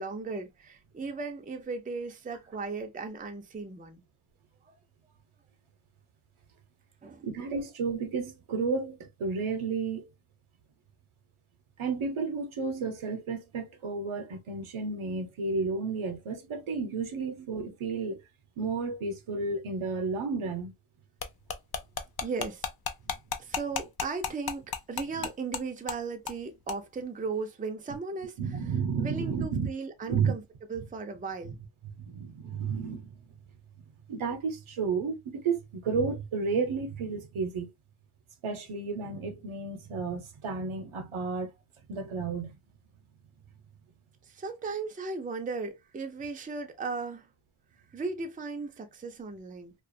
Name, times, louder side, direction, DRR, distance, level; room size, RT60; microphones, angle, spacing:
voice 1, 0.0-4.0 4.7-4.8 7.0-7.6 22.2-22.7 23.4-30.4 30.7-31.6 44.2-47.3 47.9-49.7, right 4 dB, 20° right, 0.4 m, -37 dB
voice 2, 7.2-10.0 11.8-18.2 18.6-20.7 25.2-25.3 28.4-29.7 30.1-30.3 32.0-33.1 34.1-37.7 38.4-41.5 41.9-42.5, right 4 dB, 75° right, 0.8 m, -32 dB
sound 1, 21.2-25.6 25.9-26.0 26.3-26.4 26.7-26.8, left 7 dB, 50° left, 0.5 m, -33 dB
2.4 x 2.2 x 2.5 m
wide cardioid pair, 85°, 49 cm